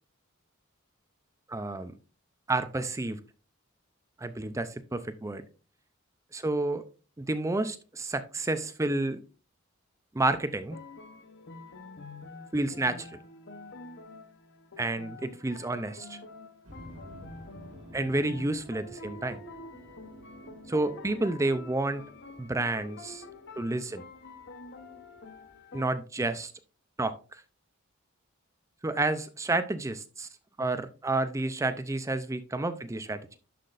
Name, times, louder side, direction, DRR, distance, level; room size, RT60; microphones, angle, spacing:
voice 1, 1.5-1.9 2.5-3.2 4.2-5.4 6.3-6.8 7.2-9.2 10.1-10.8 12.5-13.2 14.8-16.2 17.9-19.4 20.7-22.0 22.4-23.2 23.6-24.0 25.7-26.5 27.0-27.2 28.8-30.3 30.6-33.4, right 2 dB, 15° right, 0.5 m, -30 dB
sound 1, 10.5-25.8, left 3 dB, 60° left, 0.9 m, -47 dB
sound 2, 16.6-25.6, equal, 75° right, 2.0 m, -52 dB
11.5 x 5.8 x 2.5 m
head